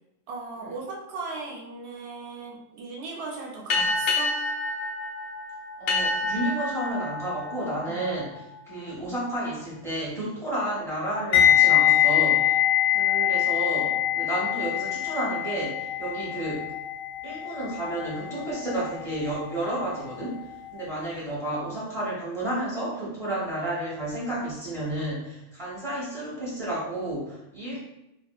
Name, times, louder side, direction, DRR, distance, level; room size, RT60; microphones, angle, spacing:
voice 1, 0.3-4.4 7.8-8.0, right 3 dB, 65° right, -2 dB, 0.8 m, -37 dB
sound 1, 3.7-8.8, left 2 dB, 60° left, 0.5 m, -29 dB
voice 2, 5.8-8.3 8.6-12.6 12.9-16.7 17.2-20.5 20.7-27.8, right 1 dB, ahead, -8 dB, 1.1 m, -31 dB
sound 2, 11.3-20.3 20.5-20.8, left 11 dB, 80° left, 1.0 m, -24 dB
2.7 x 2.3 x 2.3 m, 0.90 s
omnidirectional pair, 1.3 m